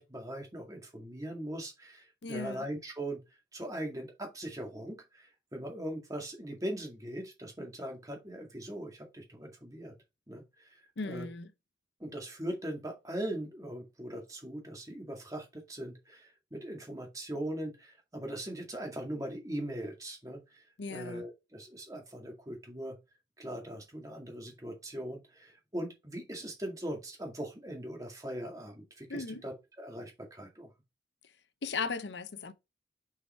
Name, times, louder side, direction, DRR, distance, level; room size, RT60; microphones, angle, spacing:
voice 1, 0.0-3.2 3.5-9.9 10.3-11.3 12.0-23.0 23.4-30.7, right 1 dB, 20° right, 1.9 m, -40 dB
voice 2, 2.2-2.6 11.0-11.5 20.8-21.2 29.1-29.4 31.6-32.5, left 4 dB, 75° left, 0.7 m, -37 dB
5.6 x 4.9 x 4.3 m
head